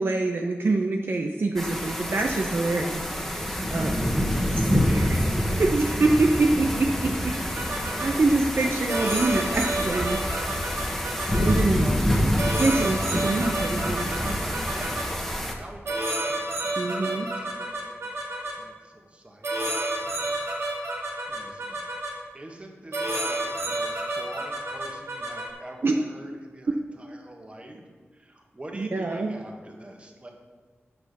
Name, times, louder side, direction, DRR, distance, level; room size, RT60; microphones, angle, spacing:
voice 1, 0.0-3.0 3.3-3.9 4.5-7.6 8.0-10.2 11.2-11.8 12.5-14.4 16.8-17.3 25.8-25.9 28.8-29.3, right 2 dB, 55° right, 1 dB, 0.7 m, -25 dB
sound 1, 1.6-15.5, equal, 5° left, 1.3 m, -27 dB
sound 2, 7.3-8.1 8.9-11.6 12.4-15.0 15.9-18.5 19.4-22.1 22.9-25.5, right 1 dB, 85° right, 2.1 m, -30 dB
voice 2, 11.1-12.0 12.7-13.6 14.2-15.3 15.6-20.6 20.9-21.0 21.3-21.8 22.3-27.8 28.1-30.3, right 1 dB, 25° right, 1 dB, 1.5 m, -45 dB
9.1 x 5.7 x 6.7 m, 1.5 s
wide cardioid pair, 95°, 4 cm